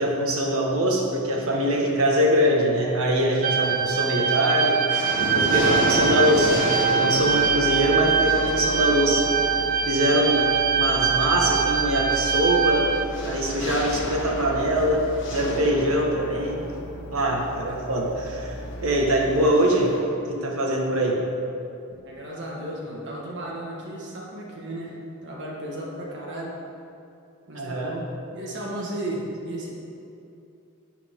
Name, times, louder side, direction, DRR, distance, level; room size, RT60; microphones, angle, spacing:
voice 1, 0.0-5.0 5.3-9.3 9.9-10.5 10.8-12.9 13.2-16.6 17.1-18.5 18.8-20.0 20.3-21.3 27.5-27.9, equal, 75° right, 0 dB, 1.6 m, -23 dB
sound 1, 3.4-13.1, right 7 dB, 40° right, 0.3 m, -23 dB
sound 2, 3.7-4.2 4.6-20.0, left 1 dB, 60° left, 1.4 m, -33 dB
sound 3, 7.2-19.5, equal, 40° left, 1.1 m, -38 dB
voice 2, 22.0-26.6 27.5-29.7, right 1 dB, 55° right, -3 dB, 1.6 m, -34 dB
12.5 x 8.2 x 3.7 m, 2.7 s
head